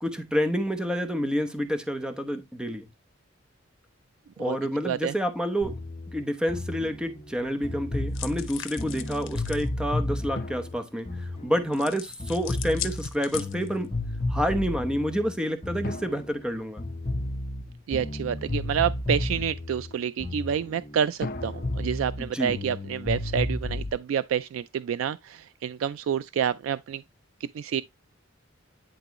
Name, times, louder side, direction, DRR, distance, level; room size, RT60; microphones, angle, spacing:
voice 1, 0.0-2.9 4.4-5.8 6.1-13.9 14.3-16.8 22.2-22.6, equal, 5° right, 0.8 m, -28 dB
voice 2, 4.8-5.1 17.9-27.0 27.4-27.8, right 8 dB, 90° right, 0.3 m, -28 dB
sound 1, 5.6-11.9 12.2-16.5 16.8-21.1 21.3-23.9, left 2 dB, 30° left, 1.2 m, -33 dB
sound 2, 8.1-9.7 11.7-13.9, left 11 dB, 80° left, 0.9 m, -39 dB
sound 3, 10.3-12.0 15.8-17.7 21.2-23.5, left 2 dB, 50° left, 0.8 m, -41 dB
10.5 x 3.8 x 3.0 m
head